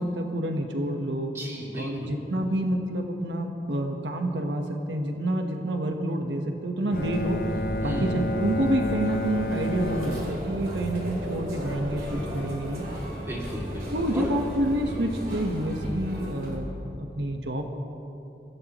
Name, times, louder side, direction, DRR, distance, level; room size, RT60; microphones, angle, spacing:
voice 1, 0.0-1.3 1.7-7.4 7.8-12.8 13.9-16.7 17.0-17.7, right 1 dB, 85° right, 4 dB, 1.2 m, -28 dB
voice 2, 1.3-2.2 7.8-8.2 13.3-14.3 14.8-14.9, equal, 15° right, -4 dB, 2.6 m, -35 dB
sound 1, 5.5-15.3, equal, 30° right, 1.7 m, -50 dB
Bowed string instrument, 6.9-11.0, left 2 dB, 50° left, 0.6 m, -32 dB
sound 2, 6.9-16.6, equal, 55° right, 3.2 m, -35 dB
25.5 x 15.5 x 3.1 m, 2.9 s
head